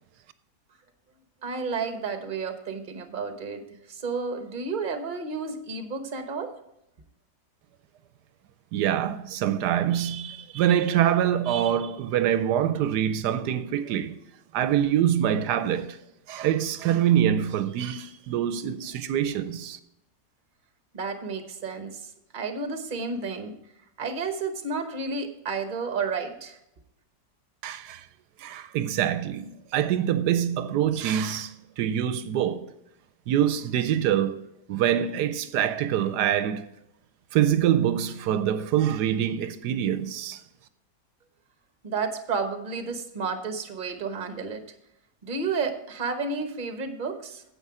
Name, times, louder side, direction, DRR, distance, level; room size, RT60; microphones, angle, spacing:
voice 1, 1.4-3.6 3.9-6.5 20.9-23.5 24.0-26.6 41.8-44.6 45.2-47.4, right 4 dB, 35° right, 1.1 m, -31 dB
voice 2, 8.7-14.2 14.5-16.0 16.3-19.8 27.6-28.1 28.4-32.7 33.3-36.7 37.3-40.4, right 10 dB, 80° right, 1.2 m, -25 dB
9.7 x 7.8 x 4.8 m
omnidirectional pair, 1.8 m